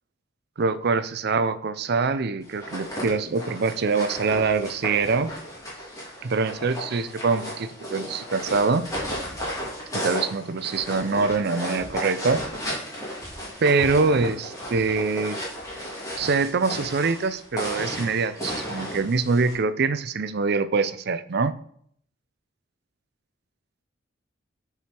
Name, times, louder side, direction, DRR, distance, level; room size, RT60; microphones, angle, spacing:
voice 1, 0.6-5.3 6.2-8.9 9.9-12.4 13.6-15.4 16.2-21.5, right 4 dB, 55° right, 13 dB, 0.5 m, -24 dB
sound 1, 2.5-19.5, equal, 20° left, 2.9 m, -34 dB
8.5 x 4.8 x 4.4 m, 0.63 s
head